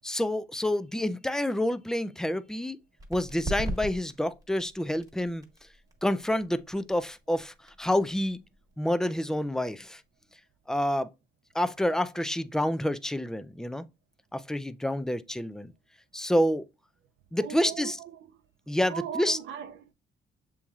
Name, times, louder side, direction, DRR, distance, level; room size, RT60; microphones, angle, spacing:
voice 1, 0.0-2.8 3.1-5.4 6.0-8.4 8.8-10.0 10.7-11.1 11.5-13.8 14.3-15.7 16.1-16.6 17.3-18.0 18.7-19.4, left 1 dB, 5° left, 0.3 m, -28 dB
sound 1, 3.0-10.3, right 1 dB, 20° right, 1.4 m, -41 dB
voice 2, 17.4-18.3 18.9-19.9, right 9 dB, 70° right, 0.5 m, -39 dB
6.9 x 3.0 x 2.3 m
cardioid pair, 90°, 20 cm